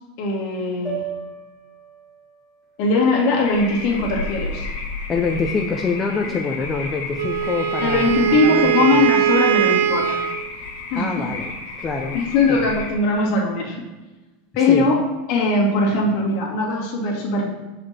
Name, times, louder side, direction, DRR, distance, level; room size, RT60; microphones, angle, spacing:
voice 1, 0.2-1.0 2.8-4.7 6.3-6.4 7.8-10.2 10.9-11.3 12.1-13.8 14.6-14.9 15.3-17.5, left 3 dB, 60° left, -2 dB, 2.1 m, -20 dB
sound 1, 0.8-5.1, right 6 dB, 25° right, 2.0 m, -38 dB
sound 2, 3.4-12.9, left 3 dB, 80° left, 2.1 m, -32 dB
voice 2, 5.1-9.0 10.9-11.5 11.8-12.2 12.5-12.6 14.7-14.9, left 4 dB, 25° left, 2 dB, 0.6 m, -25 dB
Wind instrument woodwind instrument, 7.2-10.4, right 10 dB, 85° right, 0.3 m, -20 dB
5.9 x 5.1 x 4.3 m, 1.2 s
supercardioid pair, 120°, 0 cm